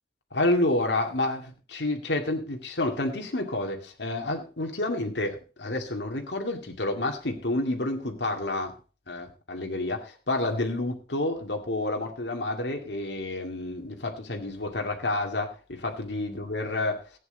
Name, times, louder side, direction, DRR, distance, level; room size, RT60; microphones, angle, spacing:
voice 1, 0.3-8.7 9.1-17.0, left 2 dB, 90° left, 2 dB, 2.2 m, -29 dB
15.5 x 9.3 x 3.9 m, 0.34 s
head